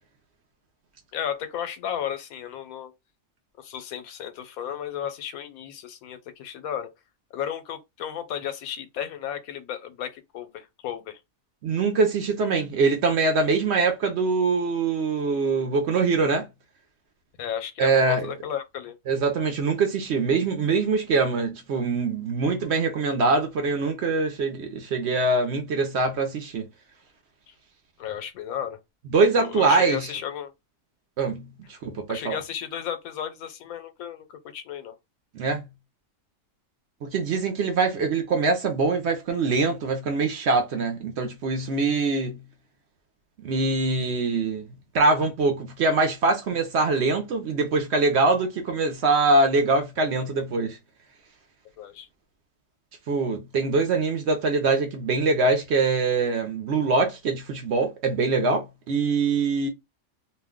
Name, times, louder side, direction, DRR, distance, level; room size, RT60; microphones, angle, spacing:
voice 1, 1.1-2.9 3.6-6.9 7.3-11.2 17.4-19.0 27.5-27.6 28.0-28.8 29.3-30.5 32.1-35.0 51.8-52.1, left 9 dB, 90° left, 1.0 m, -34 dB
voice 2, 11.6-16.5 17.8-18.3 19.1-26.7 29.1-30.1 31.2-32.4 35.3-35.6 37.0-42.4 43.4-44.7 44.9-50.8 53.1-59.7, right 3 dB, 60° right, 0.8 m, -23 dB
2.5 x 2.1 x 3.5 m
omnidirectional pair, 1.5 m